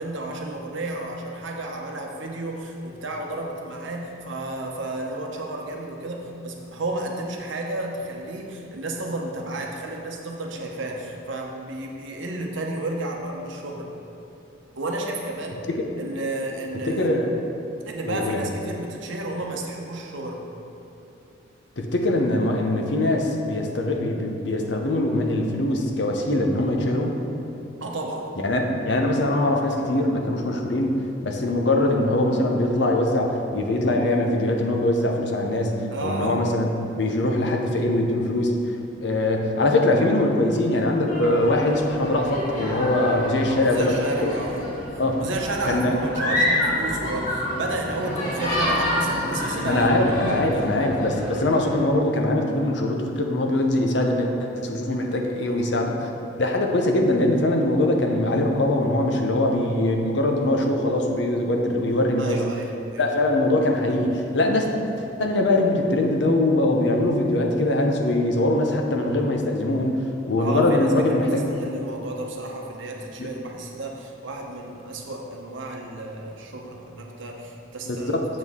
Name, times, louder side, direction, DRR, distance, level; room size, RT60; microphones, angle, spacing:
voice 1, 0.0-13.9 14.8-15.6 16.0-17.2 17.8-20.4 27.8-28.3 35.9-36.4 43.5-44.7 45.2-49.9 50.2-50.7 54.8-55.0 55.4-55.8 62.2-63.1 70.4-78.2, right 2 dB, 70° right, 0 dB, 0.9 m, -32 dB
voice 2, 16.9-17.3 18.0-18.4 21.8-27.2 28.4-31.0 31.2-38.8 39.0-44.3 45.0-45.3 45.7-46.0 49.6-56.1 56.4-62.4 63.0-64.7 65.2-70.0 70.3-71.5 73.2-73.3 77.8-78.3, left 1 dB, 60° left, 2 dB, 0.7 m, -22 dB
sound 1, 41.1-51.7, left 1 dB, 40° left, 1.6 m, -28 dB
7.3 x 6.3 x 3.6 m, 2.8 s
head